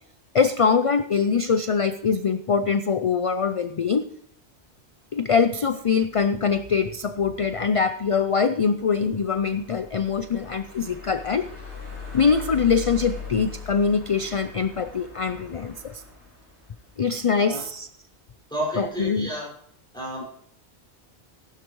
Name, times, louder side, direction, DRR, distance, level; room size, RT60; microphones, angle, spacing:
voice 1, 0.3-4.1 5.1-11.5 12.1-16.0 17.0-17.9 18.8-19.3, left 5 dB, 45° left, 11 dB, 0.5 m, -23 dB
sound 1, 5.7-17.9, left 5 dB, 90° left, 4.8 m, -41 dB
voice 2, 18.5-19.5 19.9-20.3, right 1 dB, 5° left, -6 dB, 5.2 m, -31 dB
16.0 x 11.5 x 3.1 m, 0.68 s
omnidirectional pair, 1.1 m